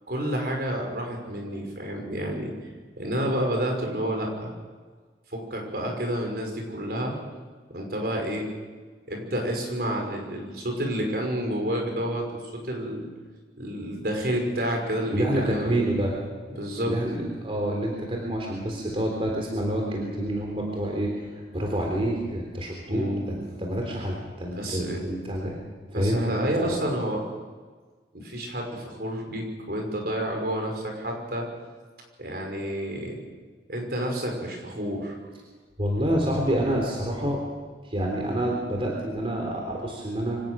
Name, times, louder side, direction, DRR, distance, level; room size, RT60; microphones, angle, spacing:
voice 1, 0.1-2.5 3.0-4.5 5.3-7.1 7.7-8.5 9.1-13.1 13.6-15.9 16.6-16.9 22.9-23.3 24.6-25.0 25.9-27.2 28.1-31.5 32.2-33.2 33.7-35.3, equal, 60° right, 1 dB, 5.8 m, -29 dB
voice 2, 15.1-16.1 16.9-21.1 21.5-25.6 25.9-26.2 26.6-26.7 35.8-37.4 37.8-40.4, right 1 dB, 35° right, 0 dB, 3.6 m, -28 dB
24.5 x 18.0 x 6.4 m, 1.4 s
head